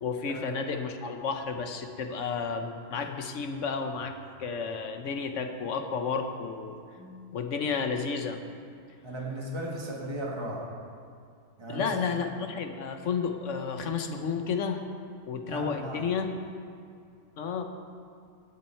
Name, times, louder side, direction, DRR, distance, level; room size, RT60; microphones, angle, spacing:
voice 1, 0.0-6.8 7.3-8.4 11.7-14.9 15.3-16.3 17.4-17.6, left 5 dB, 70° left, 6 dB, 1.2 m, -32 dB
Keyboard (musical), 6.9-9.7, left 3 dB, 35° left, 3.5 m, -54 dB
voice 2, 9.0-10.7 11.6-12.0 15.5-16.1, right 1 dB, 20° right, -2 dB, 1.5 m, -36 dB
19.0 x 7.4 x 4.5 m, 2.4 s
omnidirectional pair, 1.3 m